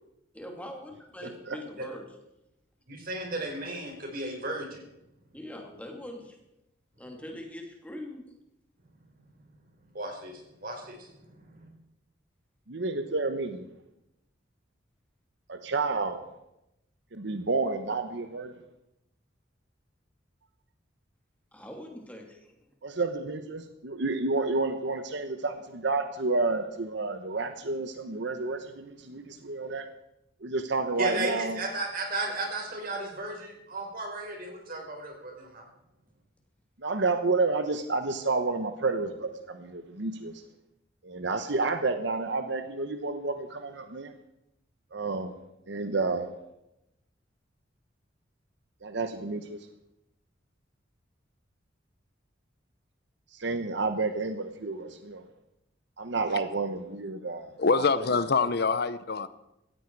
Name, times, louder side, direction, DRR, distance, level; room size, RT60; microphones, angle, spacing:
voice 1, 0.3-2.1 5.3-6.4 7.0-8.2 21.5-22.6, left 1 dB, 10° left, 2.6 m, -42 dB
voice 2, 1.2-1.6 12.7-13.6 15.5-16.2 17.1-18.5 22.8-29.9 30.4-31.6 36.8-40.3 41.0-44.1 44.9-45.3 45.7-46.3 48.8-49.6 53.3-55.2 56.0-58.1, right 3 dB, 65° right, 1.0 m, -30 dB
voice 3, 2.9-4.8 9.9-11.7 31.0-35.6, right 2 dB, 50° right, 5.0 m, -35 dB
voice 4, 57.6-59.3, left 4 dB, 60° left, 0.7 m, -25 dB
17.0 x 15.0 x 4.7 m
head